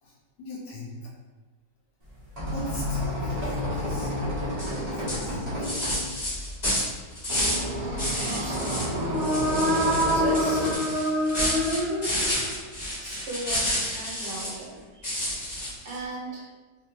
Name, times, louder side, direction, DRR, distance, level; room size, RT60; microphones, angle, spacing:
voice 1, 0.0-1.1 2.5-4.1 4.9-5.9 8.2-8.5, equal, 65° left, -3 dB, 1.2 m, -39 dB
sound 1, 2.0-10.7, equal, 30° right, 0.8 m, -31 dB
sound 2, 4.6-4.8 5.1-7.7 8.0-8.9 9.2-14.6 15.0-16.0, left 1 dB, 30° left, 1.0 m, -30 dB
voice 2, 8.2-9.2 10.1-10.7 13.0-15.2 15.8-16.5, right 2 dB, 80° right, -4 dB, 1.6 m, -37 dB
sound 3, 8.8-12.7, equal, 50° right, 1.2 m, -26 dB
4.2 x 2.3 x 2.8 m, 1.2 s
omnidirectional pair, 1.9 m